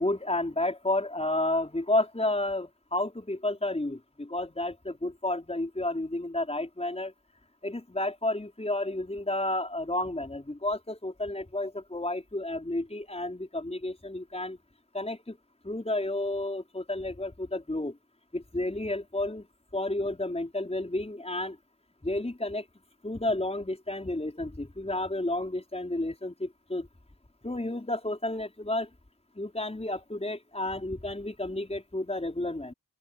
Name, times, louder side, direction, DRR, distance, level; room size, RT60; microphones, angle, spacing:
voice 1, 0.0-7.1 7.6-14.6 14.9-15.4 15.6-18.0 18.3-19.5 19.7-21.6 22.0-22.6 23.0-26.9 27.4-28.9 29.3-32.7, left 1 dB, 15° left, 5.0 m, -31 dB
open air
wide cardioid pair, 115°, 41 cm